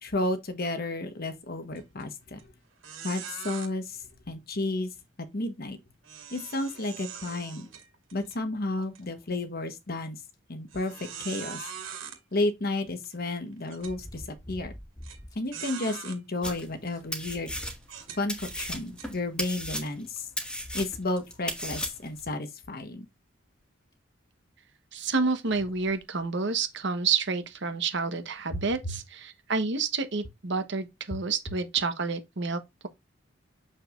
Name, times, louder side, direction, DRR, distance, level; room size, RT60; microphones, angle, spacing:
voice 1, 0.0-2.4 3.0-4.0 4.3-4.9 5.3-5.8 6.3-7.7 8.1-10.2 10.5-10.9 11.2-11.6 12.3-14.7 15.3-17.5 18.2-20.3 20.7-23.1, left 2 dB, 50° left, 1.3 m, -32 dB
sound 1, 1.8-2.0 2.4-2.5 2.8-3.7 6.0-8.4 8.8-9.0 9.6-9.7 10.7-12.2 13.0-13.1 13.7-14.0 15.0-15.2 15.5-16.2 16.9-17.0 17.8-19.1, right 8 dB, 80° right, 2.2 m, -42 dB
sound 2, 11.8-11.9 13.8-15.5 15.9-16.0 16.5-16.6 16.9-18.0 19.0-19.1 20.6-20.7 21.2-21.3 22.1-22.3 23.6-23.7 23.9-24.0 25.7-26.0 26.7-26.8, equal, 20° left, 1.9 m, -46 dB
sound 3, 16.4-16.8 17.1-18.0 18.3-22.2, equal, 5° left, 1.6 m, -35 dB
voice 2, 24.9-32.9, right 4 dB, 60° right, 1.2 m, -29 dB
7.0 x 5.5 x 2.5 m
head